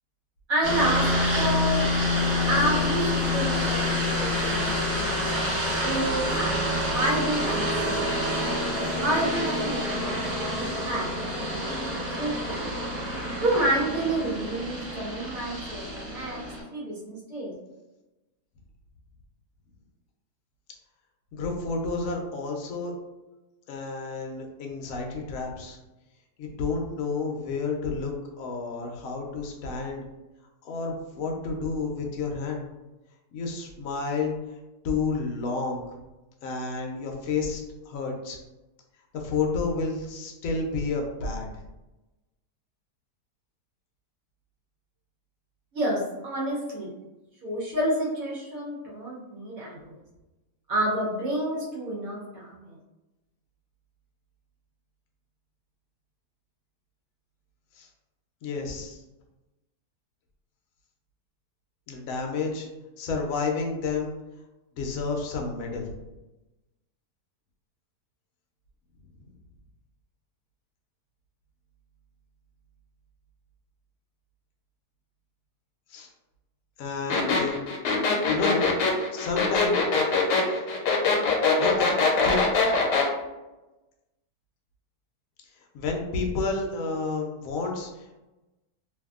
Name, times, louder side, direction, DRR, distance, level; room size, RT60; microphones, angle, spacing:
voice 1, 0.5-1.9 2.5-5.3 5.8-6.6 6.9-8.3 9.0-12.9 13.4-16.4 16.7-17.5 45.7-46.9 47.4-49.9 50.7-52.8, right 1 dB, 65° right, -5 dB, 1.1 m, -29 dB
sound 1, 0.6-16.6, left 1 dB, 40° right, 1.1 m, -27 dB
voice 2, 21.3-22.9 23.7-25.8 26.4-30.0 30.6-32.6 33.3-34.3 34.8-35.8 36.4-38.4 39.1-41.5 57.8-57.9 58.4-59.0 61.9-62.7 63.0-64.1 64.8-65.9 75.9-76.1 76.8-77.6 78.3-78.7 79.1-79.8 81.6-81.9 82.2-82.6 85.7-88.2, left 4 dB, 70° left, 1 dB, 0.8 m, -30 dB
sound 2, 77.1-83.1, left 4 dB, 85° left, 1.2 m, -23 dB
2.7 x 2.5 x 2.3 m, 1.0 s
omnidirectional pair, 1.8 m